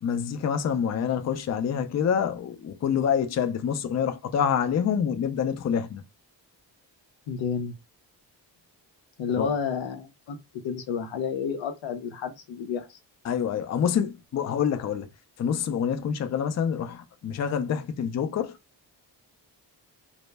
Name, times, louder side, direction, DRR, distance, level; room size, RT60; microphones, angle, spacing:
voice 1, 0.0-6.0 9.4-9.5 13.2-15.1 15.4-18.6, left 8 dB, 40° left, 0.4 m, -27 dB
voice 2, 7.3-7.7 9.2-10.4 10.6-13.0, left 6 dB, 85° left, 0.6 m, -30 dB
2.1 x 2.0 x 3.3 m
cardioid pair, 55°, 45 cm